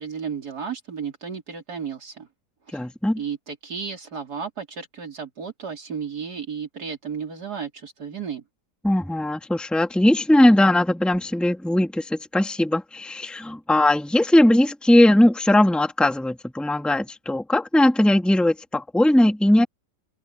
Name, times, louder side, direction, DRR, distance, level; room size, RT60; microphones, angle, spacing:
voice 1, 0.0-2.3 2.7-2.8 3.2-8.4, right 6 dB, 60° right, 3.7 m, -33 dB
voice 2, 2.7-3.2 8.8-19.7, left 1 dB, ahead, 2.1 m, -19 dB
omnidirectional pair, 1.9 m